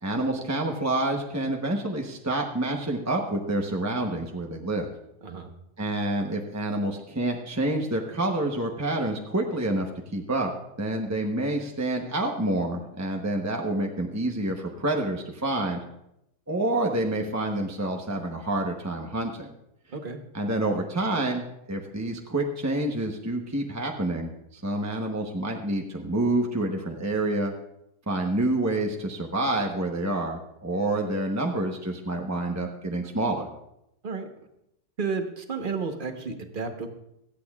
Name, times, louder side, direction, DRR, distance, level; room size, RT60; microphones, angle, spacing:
voice 1, 0.0-4.9 5.8-10.5 10.8-15.8 16.5-19.5 20.3-27.5 28.1-33.5, right 1 dB, 15° right, 1 dB, 0.7 m, -28 dB
voice 2, 35.0-36.9, right 4 dB, 35° right, 5 dB, 1.1 m, -32 dB
25.0 x 8.6 x 2.4 m, 0.82 s
omnidirectional pair, 1.7 m